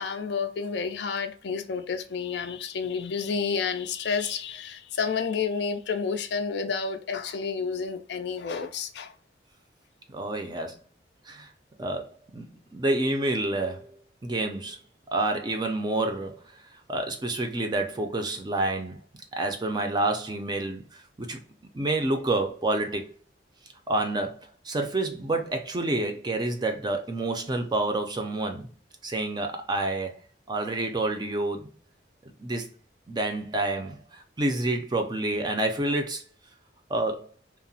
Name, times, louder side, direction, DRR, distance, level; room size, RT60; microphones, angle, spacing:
voice 1, 0.0-9.1, left 5 dB, 60° left, 0.4 m, -30 dB
voice 2, 10.1-10.8 11.3-11.5 11.8-13.9 14.2-14.8 15.1-16.4 16.9-19.0 19.3-21.4 21.7-23.0 23.9-24.4 24.6-28.7 29.0-30.1 30.5-31.7 32.4-32.7 33.1-36.2 36.9-37.3, right 2 dB, 20° right, 0.4 m, -28 dB
2.8 x 2.0 x 2.6 m
head